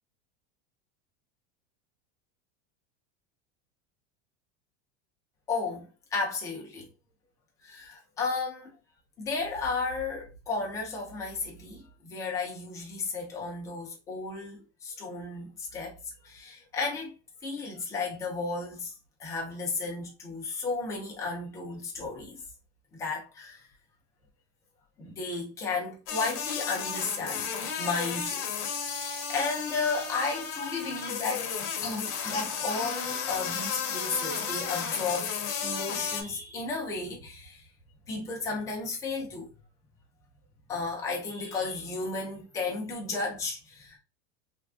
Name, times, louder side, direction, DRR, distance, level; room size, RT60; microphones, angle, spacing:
voice 1, 5.5-6.9 7.6-8.7 9.2-15.9 16.2-17.1 17.4-18.9 19.2-22.4 22.9-23.7 25.0-27.5 27.8-28.4 29.0-31.5 31.8-35.3 35.6-37.7 38.1-39.5 40.7-44.0, left 4 dB, 10° left, 0.3 m, -33 dB
sound 1, 26.1-36.2, left 6 dB, 45° left, 0.8 m, -33 dB
3.3 x 2.4 x 2.4 m
supercardioid pair, 175°, 35 cm